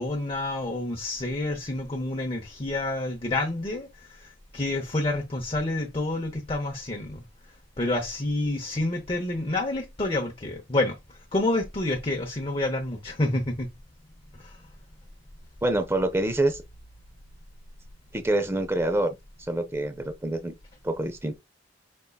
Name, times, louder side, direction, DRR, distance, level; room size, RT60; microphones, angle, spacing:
voice 1, 0.0-7.2 7.8-13.7 14.3-14.6, left 2 dB, 30° left, 0.8 m, -29 dB
voice 2, 15.6-16.6 18.1-19.1 19.5-20.5 20.8-21.4, right 1 dB, 15° right, 0.5 m, -26 dB
5.2 x 3.7 x 2.2 m
head